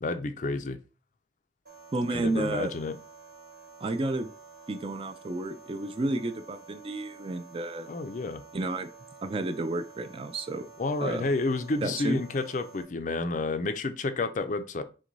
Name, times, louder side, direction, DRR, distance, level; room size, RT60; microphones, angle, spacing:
voice 1, 0.0-0.8 2.1-3.0 7.9-8.4 10.8-14.8, left 3 dB, 40° left, 0.4 m, -30 dB
sound 1, 1.7-12.8, right 4 dB, 55° right, 1.6 m, -50 dB
voice 2, 1.9-2.7 3.8-4.3 4.7-7.9 8.5-8.9 9.2-10.7 11.0-11.2 11.8-12.2, right 2 dB, 30° right, 0.4 m, -31 dB
6.0 x 2.2 x 3.9 m
head